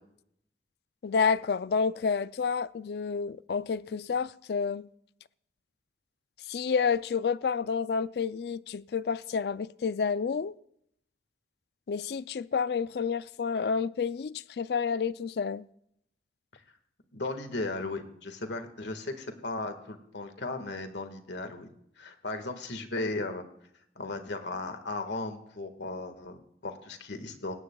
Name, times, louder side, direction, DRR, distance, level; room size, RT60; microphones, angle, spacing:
voice 1, 1.0-4.9 6.5-10.6 11.9-15.7, left 5 dB, 65° left, 0.4 m, -29 dB
voice 2, 17.1-23.4 23.9-27.6, left 2 dB, 85° left, 1.7 m, -36 dB
19.0 x 17.0 x 2.3 m
head